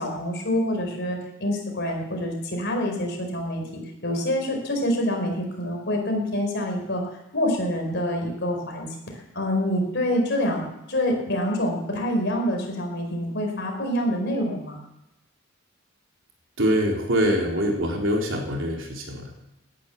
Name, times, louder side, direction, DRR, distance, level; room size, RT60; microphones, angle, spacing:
voice 1, 0.0-7.0 7.3-8.9 9.3-10.6 10.9-14.8, left 1 dB, 55° left, 2 dB, 4.7 m, -26 dB
voice 2, 16.6-19.3, equal, 65° right, 0 dB, 4.0 m, -24 dB
18.0 x 10.5 x 7.2 m, 0.90 s
head